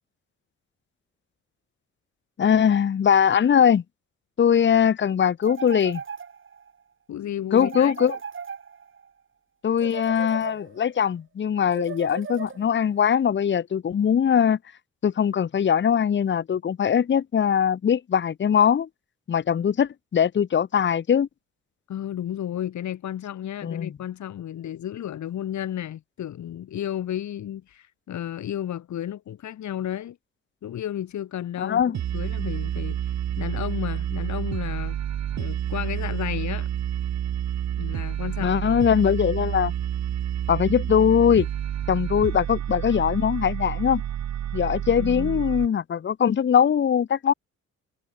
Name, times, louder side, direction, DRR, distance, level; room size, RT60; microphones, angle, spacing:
voice 1, 2.4-3.8 4.4-6.0 7.5-8.2 9.6-14.6 15.0-18.9 19.3-21.3 23.6-23.9 31.6-31.9 38.4-39.7 40.5-41.5 41.9-44.0 44.5-47.3, left 8 dB, 40° left, 1.0 m, -21 dB
sound 1, 5.4-6.7 7.6-9.1 9.8-11.0 11.7-12.9, right 6 dB, 40° right, 4.2 m, -37 dB
voice 2, 7.1-7.9 21.9-30.2 30.6-33.0 33.4-35.0 35.4-36.7 37.8-38.6 44.9-45.4, left 11 dB, 70° left, 4.3 m, -32 dB
sound 2, 31.8-31.9 32.3-32.4 32.8-32.9 33.3-33.4 33.8-33.9 34.3-34.4 34.8-34.9 35.3-35.4 35.8-35.9 36.3-36.4 36.8-36.9 37.3-37.4 37.8-38.8 39.8-40.9 41.8-41.9 42.2-42.6 42.8-42.9 43.9-44.0 44.2-44.3 44.6-44.7 44.9-45.0, right 1 dB, 5° right, 5.1 m, -51 dB
sound 3, 31.9-45.7, right 11 dB, 65° right, 1.8 m, -29 dB
cardioid pair, 90°, 30 cm